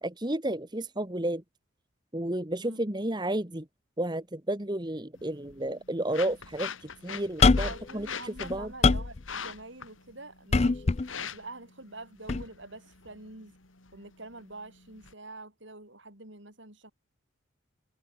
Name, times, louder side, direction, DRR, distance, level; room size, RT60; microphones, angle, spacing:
voice 1, 0.0-1.4 2.1-3.6 4.0-8.7, right 1 dB, 20° right, 1.5 m, -32 dB
voice 2, 2.6-3.0 7.6-10.9 11.2-13.5 13.9-16.9, right 2 dB, 60° right, 7.0 m, -46 dB
sound 1, 5.1-15.1, left 6 dB, 75° left, 2.5 m, -43 dB
sound 2, 7.4-7.9 8.4-9.2 10.5-11.1 12.3-12.4, left 4 dB, 30° left, 0.4 m, -22 dB
head